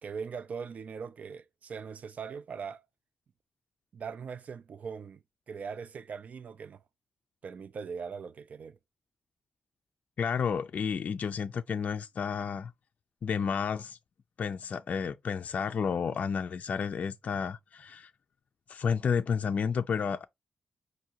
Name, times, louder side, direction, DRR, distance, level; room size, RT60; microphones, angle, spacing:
voice 1, 0.0-2.9 3.9-6.8 7.4-8.8, right 6 dB, 55° right, 0.3 m, -41 dB
voice 2, 10.2-12.7 13.2-14.0 14.4-18.1 18.7-20.2, left 6 dB, 55° left, 0.4 m, -31 dB
5.7 x 2.6 x 2.8 m
wide cardioid pair, 120°, 3 cm